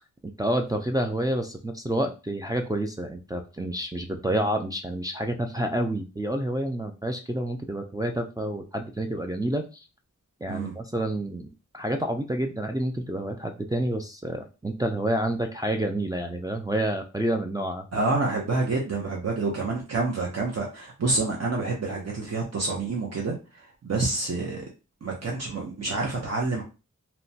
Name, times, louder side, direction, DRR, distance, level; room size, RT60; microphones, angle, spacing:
voice 1, 0.2-9.9 10.4-17.9, right 1 dB, 15° right, 2 dB, 0.3 m, -29 dB
voice 2, 17.9-24.7 25.0-26.6, right 3 dB, 55° right, -2 dB, 0.7 m, -28 dB
2.9 x 2.1 x 2.7 m, 0.30 s
wide cardioid pair, 85°, 31 cm